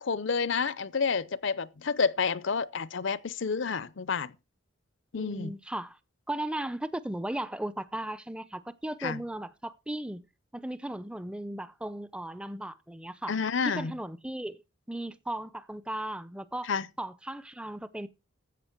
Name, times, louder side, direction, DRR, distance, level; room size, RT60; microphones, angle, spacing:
voice 1, 0.0-4.3 5.1-5.5 9.0-9.2 13.3-13.9 16.7-16.9, left 5 dB, 65° left, 0.6 m, -29 dB
voice 2, 5.1-6.0 6.3-10.3 10.5-13.3 13.6-14.6 14.9-16.7 17.0-18.1, right 1 dB, 5° right, 0.5 m, -36 dB
13.5 x 8.1 x 4.5 m
head